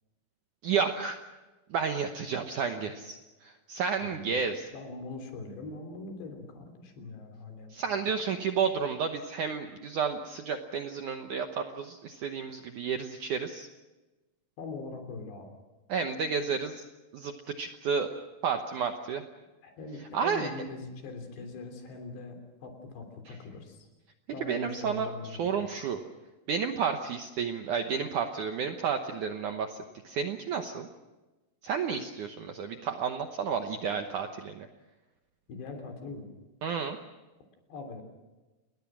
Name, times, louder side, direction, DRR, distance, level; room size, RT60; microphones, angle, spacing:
voice 1, 0.6-1.2 1.7-4.6 7.7-13.7 15.9-16.8 17.1-17.3 17.6-18.1 18.4-19.2 20.1-20.5 24.4-26.0 26.5-29.8 30.0-30.9 31.6-34.7 36.6-37.0, right 6 dB, 70° right, 5 dB, 1.9 m, -31 dB
voice 2, 4.0-4.4 4.7-7.7 14.6-15.5 19.6-23.9 24.3-25.6 35.5-36.3 37.7-38.0, left 3 dB, 75° left, 5 dB, 5.5 m, -42 dB
29.5 x 20.5 x 6.2 m, 1.1 s
omnidirectional pair, 5.0 m